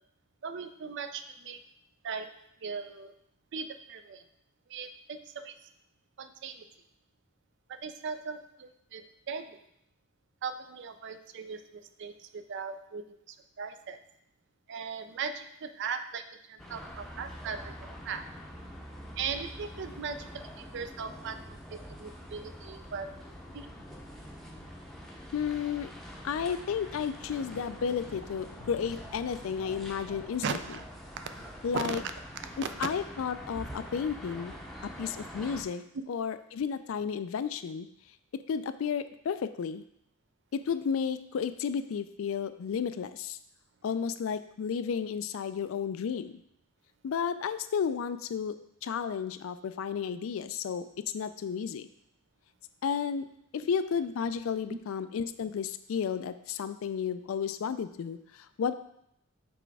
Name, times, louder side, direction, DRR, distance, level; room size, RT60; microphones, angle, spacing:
voice 1, 0.4-1.6 2.0-3.1 3.5-4.2 4.7-5.6 6.2-6.7 7.7-9.6 10.4-14.0 14.7-18.3 19.2-23.1 23.5-23.7 30.4-30.8 31.2-31.5 31.7-32.0 32.4-32.9 54.7-54.8, right 5 dB, 55° right, 10 dB, 0.4 m, -38 dB
sound 1, 16.6-35.6, equal, ahead, 0.7 m, -45 dB
sound 2, 25.0-30.2, left 1 dB, 50° left, 0.8 m, -52 dB
voice 2, 25.3-25.9 26.2-30.6 31.6-32.0 32.8-34.5 34.8-37.9 38.3-39.8 40.5-43.4 43.8-46.4 47.0-48.6 48.8-50.9 51.1-51.9 52.8-53.3 53.5-58.7, left 7 dB, 70° left, 12 dB, 0.3 m, -32 dB
6.0 x 3.4 x 4.6 m, 0.74 s
head